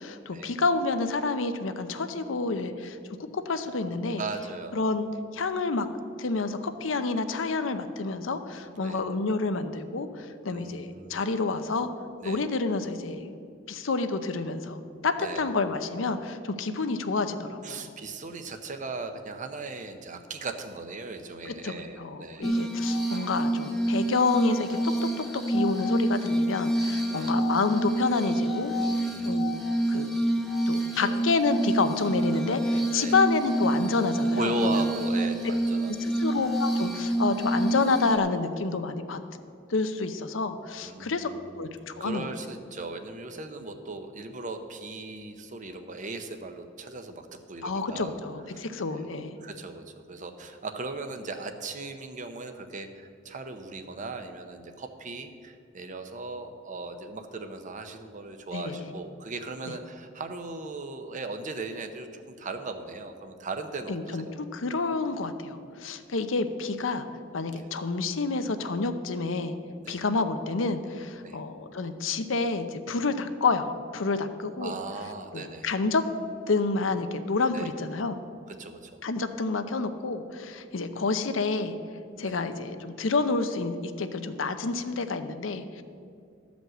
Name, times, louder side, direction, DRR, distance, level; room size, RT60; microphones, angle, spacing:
voice 1, 0.0-3.0 3.3-4.2 4.7-5.1 5.3-5.9 6.2-11.9 12.2-13.3 13.7-17.8 21.6-28.7 29.2-29.6 29.9-30.2 30.7-34.8 36.0-39.2 39.7-42.2 47.6-49.4 58.5-58.8 59.7-59.8 63.9-67.1 67.3-69.6 69.9-74.7 75.3-76.0 76.5-78.2 79.0-81.8 82.2-85.8, left 3 dB, 85° left, 9 dB, 0.7 m, -29 dB
voice 2, 4.1-4.8 8.8-9.0 10.5-11.4 12.2-12.4 15.2-15.5 17.6-22.5 27.1-27.4 28.7-29.5 30.9-31.2 33.0-33.1 34.3-36.1 40.8-41.5 42.0-48.1 48.5-49.1 49.4-64.4 67.6-67.7 69.8-70.0 71.2-71.4 74.6-75.7 77.5-77.7 78.6-79.0 82.2-82.4, right 3 dB, 40° right, 7 dB, 0.8 m, -38 dB
Glass, 22.4-38.2, right 1 dB, ahead, 0.9 m, -27 dB
12.5 x 5.2 x 7.7 m, 2.4 s
head